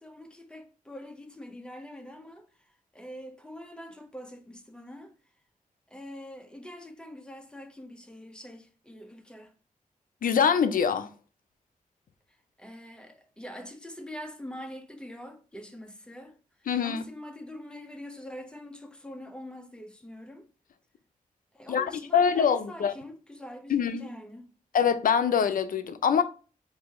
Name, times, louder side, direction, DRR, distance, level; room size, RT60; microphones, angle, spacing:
voice 1, 0.0-5.1 5.9-9.5 12.6-16.4 16.8-20.5 21.5-24.5, left 1 dB, 5° left, 0.7 m, -44 dB
voice 2, 10.2-11.1 16.7-17.0 21.7-22.9 23.7-24.1 24.7-26.2, left 7 dB, 75° left, 0.5 m, -24 dB
4.9 x 2.7 x 3.6 m
wide cardioid pair, 110°, 14 cm